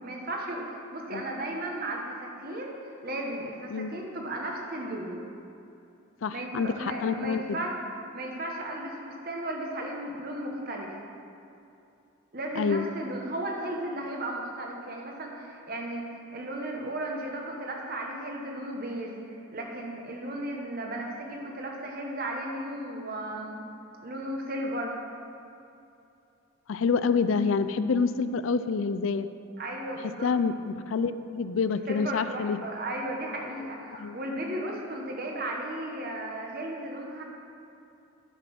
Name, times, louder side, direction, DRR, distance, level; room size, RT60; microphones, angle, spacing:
voice 1, 0.0-5.2 6.3-7.8 8.1-10.9 12.3-19.2 19.5-23.6 24.0-25.0 29.6-30.3 31.9-37.2, right 1 dB, 45° right, 0 dB, 1.4 m, -35 dB
voice 2, 6.2-7.4 12.6-12.9 26.7-29.3 30.2-32.6 34.0-34.2, left 5 dB, 75° left, 12 dB, 0.4 m, -27 dB
11.0 x 6.1 x 6.1 m, 2.7 s
head